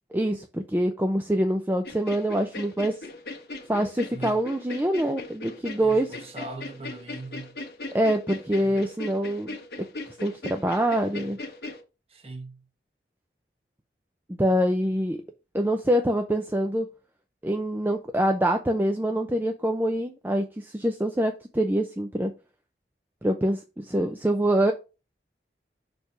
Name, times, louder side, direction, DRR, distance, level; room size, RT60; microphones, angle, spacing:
voice 1, 0.1-3.0 3.7-6.1 7.9-9.5 10.2-11.4 14.4-15.2 15.5-16.9 17.4-22.3 23.2-24.7, right 1 dB, 10° right, 0.4 m, -25 dB
sound 1, 1.8-11.8, left 2 dB, 65° left, 1.4 m, -39 dB
voice 2, 4.1-4.4 5.8-7.6 8.6-8.8 12.1-12.7, right 2 dB, 35° right, 1.0 m, -40 dB
6.5 x 3.4 x 5.7 m
head